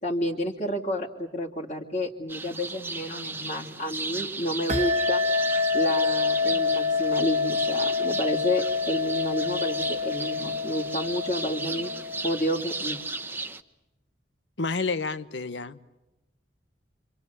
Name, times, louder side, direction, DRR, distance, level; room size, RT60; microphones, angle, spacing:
voice 1, 0.0-5.2 5.7-11.9 12.2-13.0, equal, 40° left, 2.6 m, -30 dB
sound 1, 2.3-13.6, right 3 dB, 10° right, 0.9 m, -35 dB
sound 2, 4.7-12.8, left 4 dB, 35° right, 1.1 m, -27 dB
voice 2, 14.6-15.8, left 4 dB, 85° left, 1.1 m, -29 dB
27.5 x 26.0 x 8.1 m
head